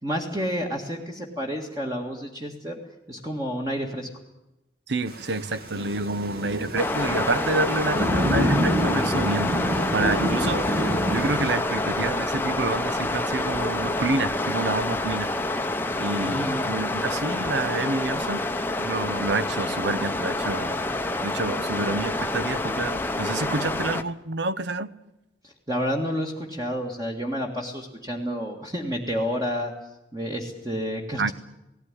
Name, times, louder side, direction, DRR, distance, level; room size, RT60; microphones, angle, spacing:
voice 1, 0.0-2.8 3.1-4.1 16.2-16.6 25.4-29.7 30.1-31.3, equal, 20° right, 1.8 m, -30 dB
voice 2, 4.9-15.3 16.0-18.4 18.8-20.8 21.2-24.9 31.2-31.3, right 3 dB, 70° right, 0.8 m, -28 dB
Thunder / Rain, 5.1-11.5, equal, 50° right, 2.0 m, -28 dB
sound 1, 6.8-24.0, left 2 dB, 10° left, 0.8 m, -27 dB
18.5 x 16.5 x 9.9 m
head